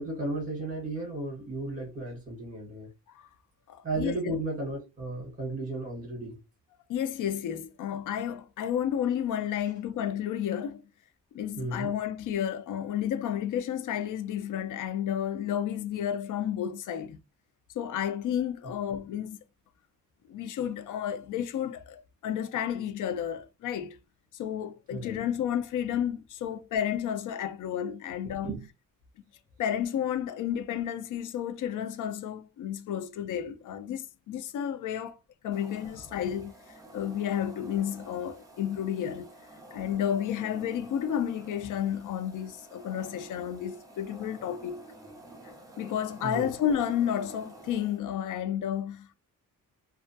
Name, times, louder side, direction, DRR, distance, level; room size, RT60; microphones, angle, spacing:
voice 1, 0.0-2.9 3.8-6.4 11.6-11.9 24.9-25.2 28.4-28.7 46.2-46.5, right 2 dB, 30° right, 1.1 m, -34 dB
voice 2, 3.7-4.4 6.9-10.8 11.3-17.2 17.8-19.4 20.3-24.0 24.3-28.5 29.6-35.2 35.4-36.5 36.9-39.3 39.7-44.8 45.8-49.2, left 9 dB, 65° left, 0.4 m, -31 dB
sound 1, 35.5-48.0, right 1 dB, 10° right, 0.5 m, -49 dB
2.3 x 2.1 x 2.6 m
wide cardioid pair, 170°, 33 cm